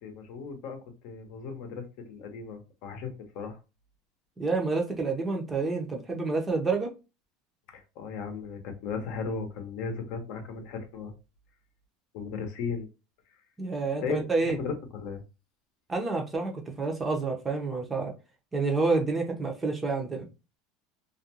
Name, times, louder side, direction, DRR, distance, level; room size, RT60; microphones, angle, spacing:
voice 1, 0.0-3.6 7.7-11.1 12.1-12.9 14.0-14.2 14.4-15.2, left 5 dB, 60° left, 0.7 m, -36 dB
voice 2, 4.4-6.9 13.6-14.6 15.9-16.5 16.8-18.1 18.5-20.3, right 3 dB, 15° right, 0.6 m, -28 dB
2.4 x 2.2 x 2.8 m
supercardioid pair, 140°, 0 cm